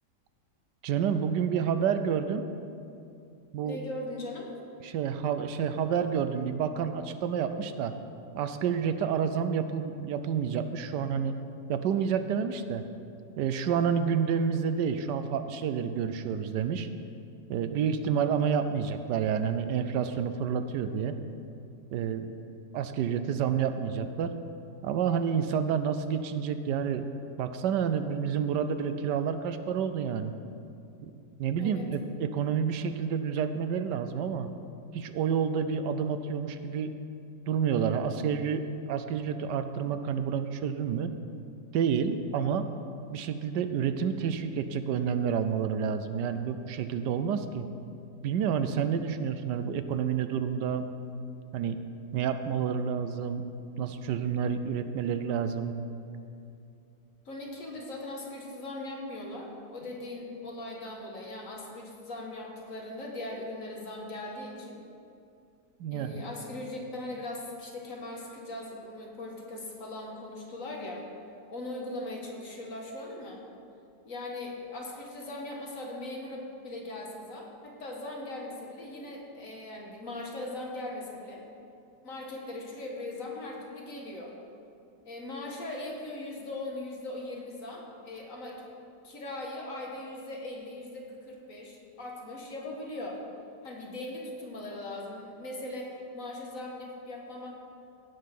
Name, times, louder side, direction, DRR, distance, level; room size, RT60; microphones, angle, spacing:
voice 1, 0.8-2.5 3.5-3.8 4.8-7.9 8.3-11.4 11.7-12.8 13.4-16.9 17.5-21.2 21.9-22.3 22.7-24.3 24.8-27.1 27.4-30.3 31.4-34.5 34.9-36.9 37.5-41.1 41.7-42.7 43.1-47.7 48.2-50.9 51.5-51.8 52.1-53.5 53.8-55.8 65.8-66.1, right 7 dB, 80° right, 9 dB, 1.3 m, -29 dB
voice 2, 3.6-4.5 31.6-31.9 57.3-64.8 65.9-71.1 71.5-73.4 74.0-81.4 82.0-84.3 85.0-88.8 89.0-93.2 93.6-97.6, left 2 dB, 50° left, -1 dB, 1.8 m, -39 dB
16.5 x 5.5 x 5.9 m, 2.6 s
omnidirectional pair, 1.8 m